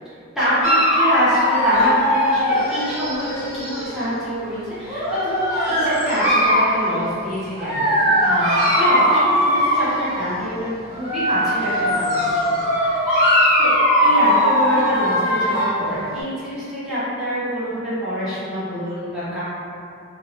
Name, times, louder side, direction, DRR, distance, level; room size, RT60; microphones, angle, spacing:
voice 1, 0.4-13.1 13.6-13.8 14.0-19.4, equal, 5° right, -13 dB, 0.8 m, -26 dB
Dog, 0.6-4.0 4.8-6.8 7.6-10.2 10.9-15.8, equal, 35° right, 1.0 m, -19 dB
2.3 x 2.0 x 2.6 m, 2.5 s
head